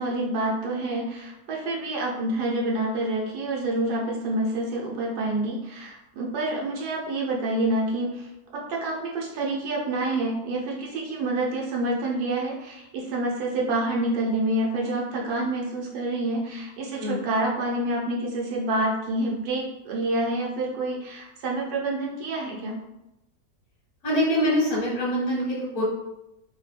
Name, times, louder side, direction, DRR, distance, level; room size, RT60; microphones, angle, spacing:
voice 1, 0.0-22.8, right 2 dB, 85° right, -2 dB, 1.3 m, -28 dB
voice 2, 24.0-25.8, equal, 60° left, -5 dB, 1.1 m, -24 dB
3.0 x 2.1 x 3.3 m, 0.90 s
omnidirectional pair, 1.7 m